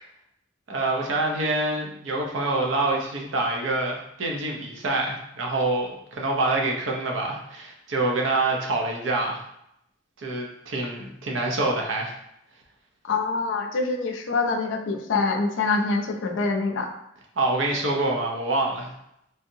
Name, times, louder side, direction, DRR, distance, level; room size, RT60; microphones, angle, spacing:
voice 1, 0.7-9.4 10.2-12.1 17.4-18.9, right 2 dB, 80° right, 0 dB, 0.7 m, -26 dB
voice 2, 13.0-16.9, left 3 dB, 75° left, 4 dB, 0.4 m, -25 dB
3.2 x 2.7 x 2.7 m, 0.78 s
head